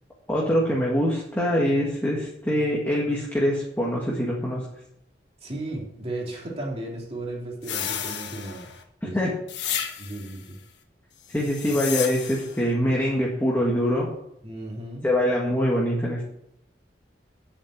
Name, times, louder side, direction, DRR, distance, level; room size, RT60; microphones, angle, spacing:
voice 1, 0.3-4.7 9.1-9.3 11.3-14.1 15.0-16.2, equal, 10° left, -4 dB, 1.8 m, -24 dB
voice 2, 5.4-8.7 9.0-9.2 10.0-10.6 14.4-15.1, right 2 dB, 35° right, -2 dB, 2.9 m, -35 dB
sound 1, 7.6-8.8 9.5-10.4 11.3-12.6, left 9 dB, 80° left, 1.4 m, -32 dB
9.2 x 7.2 x 8.0 m, 0.77 s
head